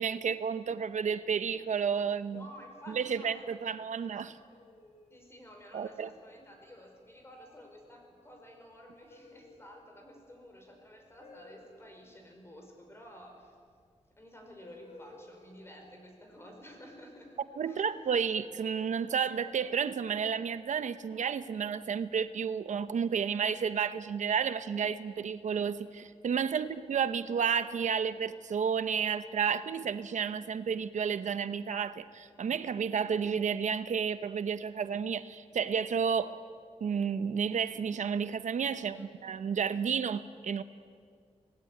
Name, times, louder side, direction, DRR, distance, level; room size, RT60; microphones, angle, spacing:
voice 1, 0.0-2.4 2.9-4.4 5.7-6.1 17.6-36.4 36.8-40.6, right 7 dB, 80° right, 12 dB, 0.8 m, -31 dB
voice 2, 2.3-3.6 5.1-13.6 14.2-17.4 17.7-17.9 26.4-26.7 38.7-39.2, equal, 20° left, 2 dB, 5.4 m, -52 dB
sound 1, 4.3-5.2 6.5-6.8 7.3-7.7 9.1-9.7 11.2-11.8 13.7-13.8 14.6-15.6 17.5-18.6 19.6-20.2 21.4-22.0, left 2 dB, 70° left, 4.7 m, -56 dB
26.0 x 19.5 x 9.4 m, 2.1 s
wide cardioid pair, 150°, 13 cm